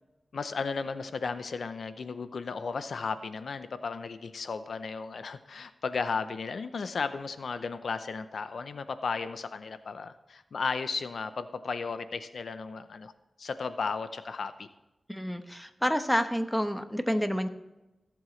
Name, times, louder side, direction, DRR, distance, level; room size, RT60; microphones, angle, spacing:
voice 1, 0.3-13.1 13.4-14.7, left 4 dB, 80° left, 11 dB, 0.6 m, -34 dB
voice 2, 15.1-17.5, equal, 5° left, 8 dB, 1.0 m, -29 dB
17.5 x 7.8 x 3.2 m, 1.0 s
cardioid pair, 60°, 0 cm